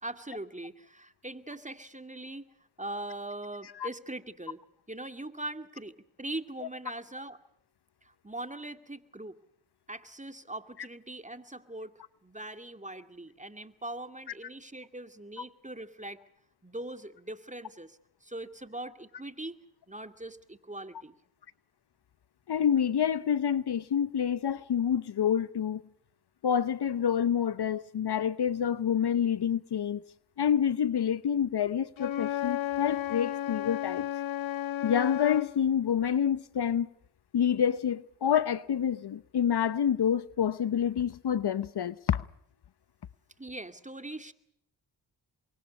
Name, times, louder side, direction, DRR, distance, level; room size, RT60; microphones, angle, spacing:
voice 1, 0.0-2.5 2.8-4.6 4.9-5.9 6.2-7.4 8.0-9.4 9.9-11.9 12.2-16.2 16.6-19.6 19.9-21.2 43.4-44.3, right 1 dB, 15° right, 2.3 m, -41 dB
voice 2, 22.5-25.8 26.4-30.0 30.4-34.1 34.8-36.9 37.3-42.2, left 8 dB, 60° left, 0.9 m, -27 dB
Wind instrument woodwind instrument, 32.0-35.5, left 11 dB, 85° left, 1.6 m, -33 dB
28.5 x 23.0 x 5.4 m
supercardioid pair, 40°, 46 cm